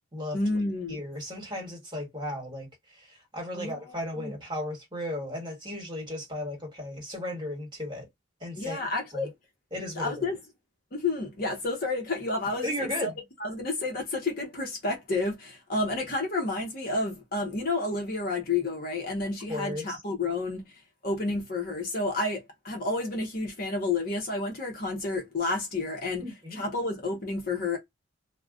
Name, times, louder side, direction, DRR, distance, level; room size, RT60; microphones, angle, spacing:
voice 1, 0.3-1.0 3.5-4.3 8.6-9.3 10.0-10.4 10.9-13.1 13.4-20.7 21.0-27.8, left 2 dB, 45° left, 0.8 m, -30 dB
voice 2, 0.9-8.1 8.4-8.8 9.1-9.3 9.7-10.2 12.6-13.2 19.5-20.0 26.2-26.6, left 1 dB, 20° right, 1.3 m, -35 dB
2.3 x 2.2 x 3.6 m
head